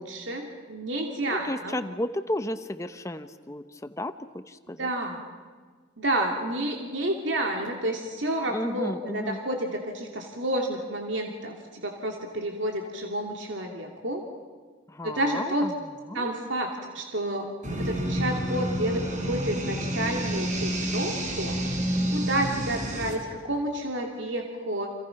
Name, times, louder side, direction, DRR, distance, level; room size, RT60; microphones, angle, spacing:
voice 1, 0.0-1.8 4.8-5.2 6.0-14.2 15.0-15.7 16.1-16.7 16.9-21.6 22.1-24.9, right 1 dB, 85° right, 2 dB, 2.7 m, -30 dB
voice 2, 1.3-4.9 8.5-9.4 14.9-15.7 16.1-16.3, left 1 dB, 15° left, 10 dB, 0.8 m, -33 dB
sound 1, 17.6-23.1, right 1 dB, 40° right, 4.9 m, -29 dB
30.0 x 27.5 x 5.9 m, 1.5 s
head